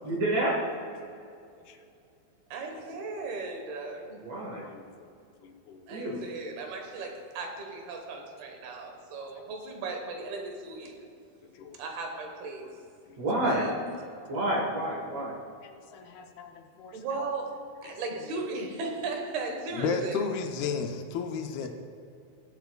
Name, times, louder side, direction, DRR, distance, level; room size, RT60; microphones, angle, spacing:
voice 1, 0.0-0.6 4.2-4.6 5.9-6.3 13.2-13.6 14.3-15.3, right 1 dB, 55° right, -2 dB, 2.2 m, -28 dB
voice 2, 2.5-4.2 5.9-11.0 11.8-12.7 13.4-13.7 16.9-17.5 17.8-20.2 21.6-21.7, right 3 dB, 85° right, 2 dB, 3.2 m, -36 dB
voice 3, 5.4-5.8 11.6-11.8 13.1-13.2 13.9-14.0 15.6-17.3 17.8-17.9 19.7-21.7, left 5 dB, 85° left, 5 dB, 2.7 m, -35 dB
20.0 x 8.0 x 2.3 m, 2.5 s
omnidirectional pair, 4.4 m